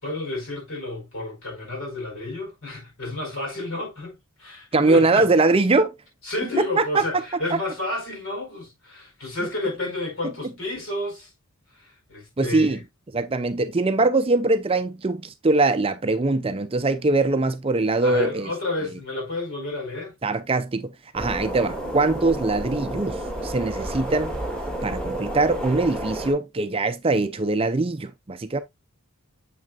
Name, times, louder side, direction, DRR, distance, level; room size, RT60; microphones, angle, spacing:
voice 1, 0.0-5.2 6.2-11.3 11.7-12.8 18.0-20.1, left 2 dB, 65° left, 4.8 m, -31 dB
voice 2, 4.7-6.0 6.6-7.0 12.4-12.8 13.1-18.5 20.2-24.3 24.8-28.6, right 3 dB, 25° right, 0.5 m, -22 dB
sound 1, 21.1-26.3, right 1 dB, 5° left, 2.2 m, -30 dB
7.7 x 6.1 x 2.3 m
head